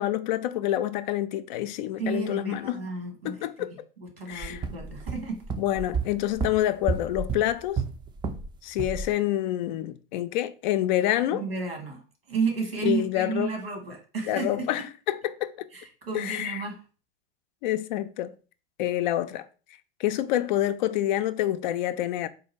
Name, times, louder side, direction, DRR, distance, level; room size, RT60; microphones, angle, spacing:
voice 1, 0.0-2.8 3.2-3.7 4.3-4.6 5.6-7.8 8.6-11.4 12.8-13.5 14.3-15.7 16.1-16.6 17.6-18.3 18.8-19.5 20.0-22.3, left 13 dB, 50° left, 0.4 m, -27 dB
voice 2, 2.0-5.4 11.3-14.9 15.7-16.7, right 4 dB, 85° right, 1.4 m, -32 dB
sound 1, 4.4-8.5 8.8-9.1, right 5 dB, 15° right, 0.4 m, -31 dB
3.8 x 2.4 x 4.3 m
figure-of-eight pair, 80°, 29 cm